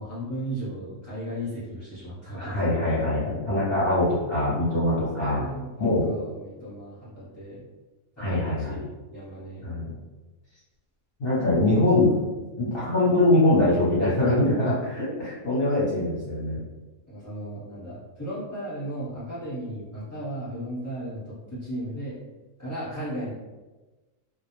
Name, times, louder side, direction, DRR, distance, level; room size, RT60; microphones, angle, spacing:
voice 1, 0.0-3.0 4.8-5.0 5.3-7.7 8.2-9.6 17.1-22.2 22.6-23.3, right 1 dB, 15° left, -14 dB, 0.8 m, -36 dB
voice 2, 2.3-5.5 5.8-6.1 8.2-8.8 9.6-9.9 11.2-12.1 12.6-16.6, left 1 dB, 50° left, -9 dB, 0.8 m, -23 dB
2.3 x 2.0 x 2.9 m, 1.2 s
omnidirectional pair, 1.4 m